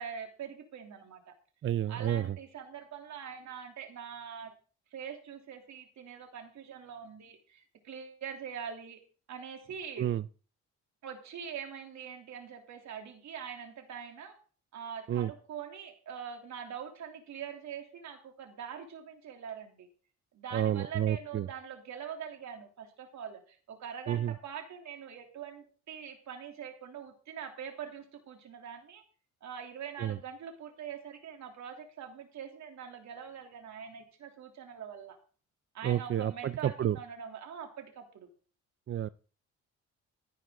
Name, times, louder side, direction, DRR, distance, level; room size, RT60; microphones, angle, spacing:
voice 1, 0.0-1.3 1.9-4.5 4.9-9.0 9.3-10.1 11.0-14.4 14.7-19.9 20.3-29.0 29.4-35.2 35.7-38.3, right 7 dB, 70° right, 3 dB, 3.2 m, -43 dB
voice 2, 1.6-2.4 10.0-10.3 15.1-15.3 20.5-21.5 24.1-24.4 30.0-30.2 35.8-37.0 38.9-39.1, right 11 dB, 45° right, 15 dB, 0.5 m, -30 dB
13.5 x 11.0 x 3.9 m, 0.40 s
cardioid pair, 90°, 30 cm